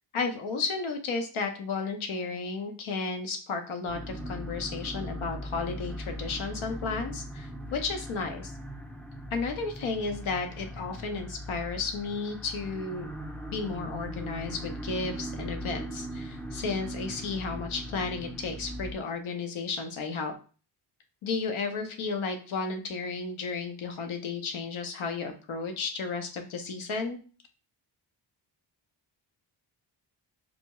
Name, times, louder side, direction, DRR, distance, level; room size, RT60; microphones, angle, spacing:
voice 1, 0.1-8.5 9.3-13.1 13.5-20.3 21.2-27.2, left 4 dB, 85° left, 5 dB, 0.8 m, -33 dB
sound 1, 3.9-18.9, equal, 5° left, 0.4 m, -39 dB
4.1 x 2.3 x 2.9 m, 0.38 s
cardioid pair, 85°, 47 cm